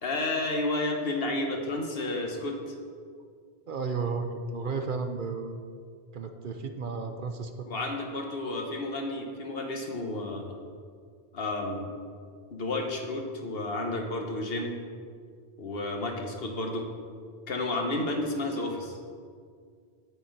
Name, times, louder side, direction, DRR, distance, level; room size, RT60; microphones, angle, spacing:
voice 1, 0.0-2.7 7.6-10.6 11.3-11.9 12.5-14.8 15.6-16.8 17.5-19.0, left 2 dB, 65° left, 2 dB, 1.4 m, -31 dB
voice 2, 3.7-5.6 6.1-7.7, right 4 dB, 55° right, 7 dB, 0.8 m, -33 dB
8.0 x 5.7 x 7.7 m, 2.1 s
omnidirectional pair, 1.1 m